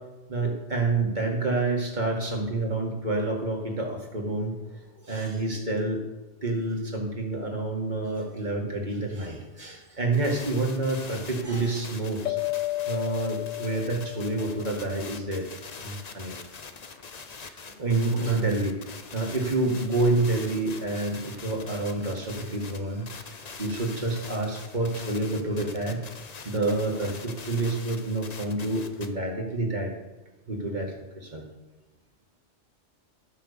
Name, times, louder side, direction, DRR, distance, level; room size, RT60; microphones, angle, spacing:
voice 1, 0.3-6.0 6.4-12.4 12.9-15.5 15.8-16.4 17.4-18.8 19.1-26.1 26.4-29.9 30.5-31.4, right 2 dB, 35° right, 0 dB, 2.1 m, -28 dB
sound 1, 10.1-29.1, left 5 dB, 40° left, 0.8 m, -44 dB
sound 2, 12.3-15.2, left 17 dB, 85° left, 1.0 m, -32 dB
13.5 x 5.7 x 6.8 m, 1.2 s
omnidirectional pair, 1.3 m